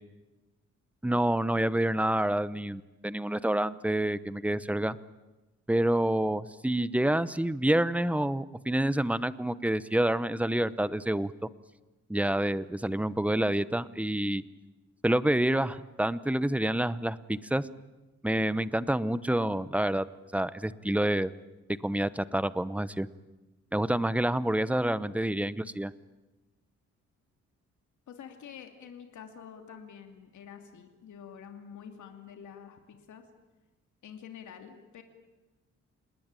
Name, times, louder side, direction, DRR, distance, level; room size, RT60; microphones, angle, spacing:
voice 1, 1.0-5.0 5.7-11.3 12.1-14.4 15.0-17.6 18.2-20.0 20.3-21.3 21.8-23.1 23.7-25.9, right 1 dB, 5° right, 16 dB, 0.8 m, -28 dB
voice 2, 28.1-33.3 34.0-35.0, left 7 dB, 75° left, 5 dB, 2.7 m, -47 dB
27.5 x 20.0 x 9.0 m, 1.1 s
cardioid pair, 125°, 30 cm